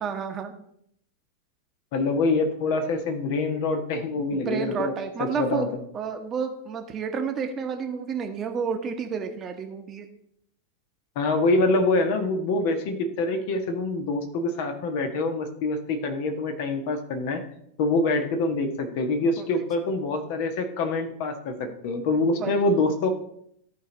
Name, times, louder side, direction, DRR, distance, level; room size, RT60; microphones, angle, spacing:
voice 1, 0.0-0.5 4.3-5.7 5.9-10.1 19.4-19.5 22.2-22.6, right 6 dB, 25° right, 5 dB, 1.2 m, -30 dB
voice 2, 1.9-4.9 5.2-5.7 11.1-17.4 17.8-23.1, left 2 dB, 50° left, 5 dB, 1.4 m, -25 dB
13.5 x 4.6 x 4.0 m, 0.71 s
figure-of-eight pair, 90°, 0 cm